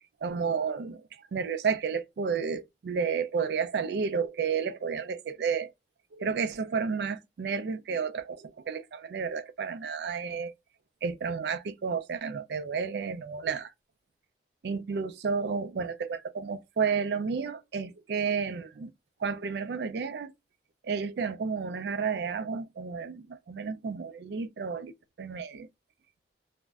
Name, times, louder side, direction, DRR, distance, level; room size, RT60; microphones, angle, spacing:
voice 1, 0.2-5.7 6.1-10.5 11.0-13.7 14.6-18.9 19.2-20.3 20.8-25.7, right 5 dB, 70° right, 0.4 m, -31 dB
2.5 x 2.0 x 3.3 m
head